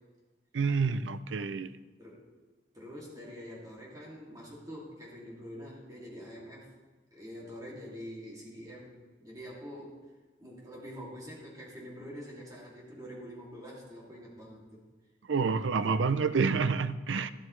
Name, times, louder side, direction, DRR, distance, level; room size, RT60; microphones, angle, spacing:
voice 1, 0.5-1.7 15.3-17.3, right 5 dB, 90° right, 14 dB, 0.5 m, -28 dB
voice 2, 2.7-6.7 7.1-10.1 10.4-14.8 15.8-16.3, equal, 20° right, -5 dB, 2.5 m, -45 dB
12.5 x 12.5 x 3.2 m, 1.3 s
head